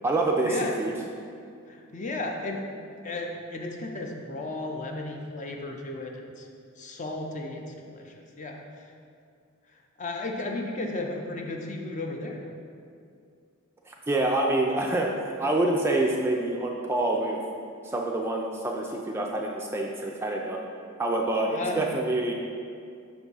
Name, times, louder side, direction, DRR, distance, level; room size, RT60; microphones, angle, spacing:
voice 1, 0.0-0.9 13.9-15.1 15.4-17.4 17.8-20.6 21.0-22.3, right 2 dB, 10° right, 0 dB, 0.3 m, -26 dB
voice 2, 1.7-2.6 3.0-6.5 6.8-8.8 9.7-12.4 21.5-21.9, left 2 dB, 35° left, 1 dB, 0.6 m, -34 dB
5.8 x 3.5 x 5.4 m, 2.3 s
head